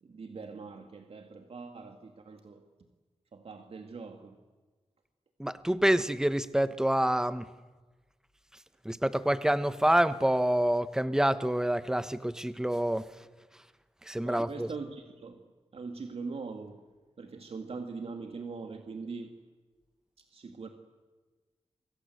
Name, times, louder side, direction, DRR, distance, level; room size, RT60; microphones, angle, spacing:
voice 1, 0.0-2.6 3.3-4.4 14.2-15.4 15.7-16.8 17.2-19.4 20.2-20.7, right 4 dB, 65° right, 2.3 m, -42 dB
voice 2, 5.4-7.5 8.8-13.1 14.0-14.7, right 1 dB, 5° right, 1.1 m, -27 dB
29.0 x 25.5 x 8.0 m
wide cardioid pair, 100°, 11 cm